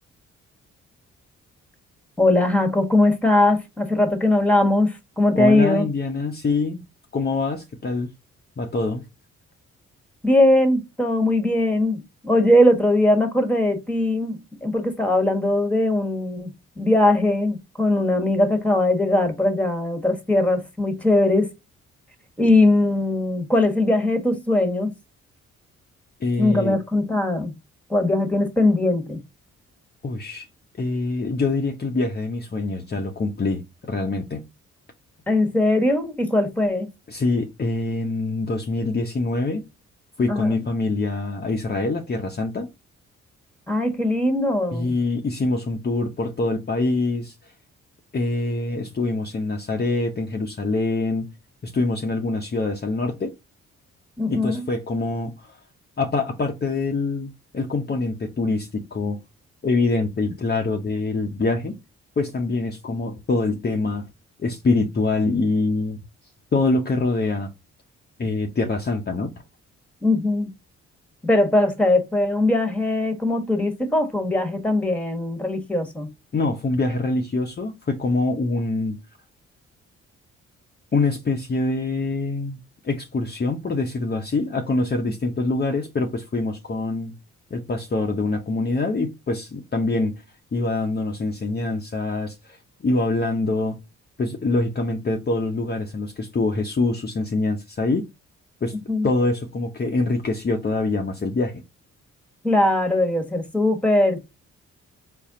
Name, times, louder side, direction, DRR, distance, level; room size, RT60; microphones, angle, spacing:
voice 1, 2.2-5.9 10.2-21.5 22.4-24.9 26.4-27.6 27.9-29.2 35.3-36.9 40.3-40.6 43.7-45.0 54.2-54.7 70.0-70.5 71.2-76.1 98.9-99.1 102.4-104.3, left 1 dB, 5° left, 1.3 m, -20 dB
voice 2, 5.3-6.8 7.1-8.1 8.6-9.0 26.2-26.8 30.0-30.5 30.8-34.4 37.1-39.7 40.2-42.7 44.7-47.3 48.1-51.3 51.6-53.3 54.3-55.6 56.0-59.2 59.6-61.8 62.2-64.0 64.4-66.0 66.5-67.5 68.2-69.3 76.3-79.0 80.9-82.6 82.8-87.2 87.5-90.1 90.5-92.6 92.8-93.8 94.2-98.1 98.6-98.8 99.0-101.6, left 3 dB, 30° left, 0.8 m, -24 dB
4.2 x 2.1 x 3.6 m
supercardioid pair, 50°, 31 cm